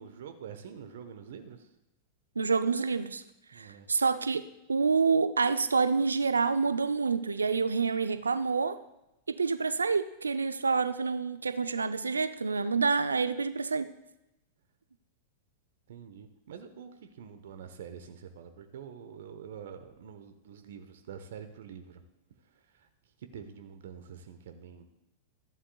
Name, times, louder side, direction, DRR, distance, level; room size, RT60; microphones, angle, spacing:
voice 1, 0.0-1.7 3.5-3.9 15.9-22.0 22.4-24.8, right 7 dB, 65° right, 7 dB, 0.9 m, -46 dB
voice 2, 2.4-3.2 3.5-4.4 4.7-8.8 9.3-13.9, right 4 dB, 85° right, 13 dB, 0.4 m, -27 dB
14.5 x 11.0 x 2.3 m, 0.90 s
hypercardioid pair, 95°, 0 cm